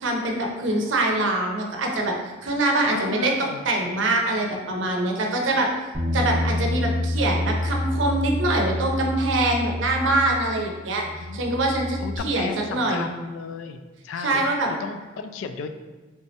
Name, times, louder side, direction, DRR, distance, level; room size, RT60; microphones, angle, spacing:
voice 1, 0.0-2.2 2.4-5.7 6.1-11.0 11.3-13.1 14.2-14.7, right 2 dB, 70° right, 1 dB, 0.6 m, -24 dB
voice 2, 2.9-3.6 11.0-11.5 12.0-14.5 14.8-15.7, left 5 dB, 80° left, 8 dB, 0.3 m, -34 dB
Bass guitar, 5.9-10.7 11.0-12.2, left 1 dB, 30° right, 0.8 m, -28 dB
3.4 x 3.1 x 2.7 m, 1.3 s
head